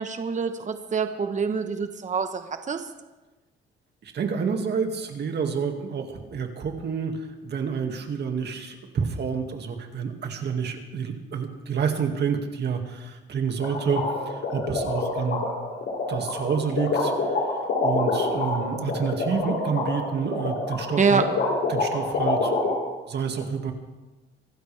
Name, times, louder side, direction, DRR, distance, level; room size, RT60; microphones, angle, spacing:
voice 1, 0.0-2.8 21.0-21.3, right 5 dB, 40° right, 7 dB, 1.2 m, -25 dB
voice 2, 4.0-15.4 16.1-21.3 21.7-22.6 23.1-23.7, right 6 dB, 60° right, 4 dB, 2.2 m, -29 dB
sound 1, 13.6-22.7, left 3 dB, 75° left, 6.5 m, -26 dB
25.0 x 12.5 x 3.5 m, 1.2 s
cardioid pair, 90°, 20 cm